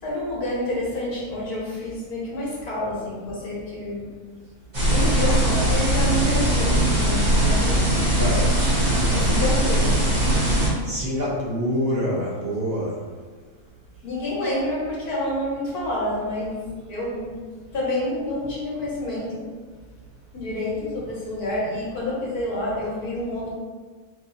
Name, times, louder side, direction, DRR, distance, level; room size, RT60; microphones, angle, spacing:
voice 1, 0.0-4.0 4.9-8.0 9.1-10.0 14.0-17.4 17.7-19.4 20.3-23.5, left 1 dB, 75° left, -6 dB, 1.8 m, -28 dB
sound 1, 4.7-10.7, right 1 dB, 30° right, 1.2 m, -20 dB
voice 2, 8.2-8.5 10.5-13.0, equal, 50° right, -5 dB, 0.9 m, -26 dB
5.4 x 2.7 x 2.6 m, 1.4 s
omnidirectional pair, 1.6 m